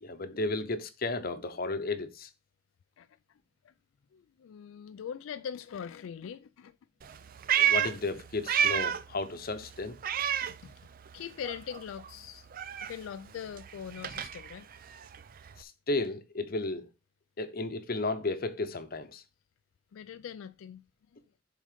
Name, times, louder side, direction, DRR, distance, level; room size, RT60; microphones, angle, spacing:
voice 1, 0.0-2.3 7.6-10.0 15.6-16.9 17.4-19.2, left 2 dB, 50° left, 0.8 m, -33 dB
voice 2, 4.1-6.8 10.5-10.9 11.1-12.5 12.8-14.7 19.9-20.8 21.1-21.2, left 8 dB, 85° left, 0.3 m, -42 dB
Meow, 7.0-9.2 9.5-11.2 11.4-15.6, right 9 dB, 45° right, 0.4 m, -31 dB
7.4 x 3.8 x 5.0 m
head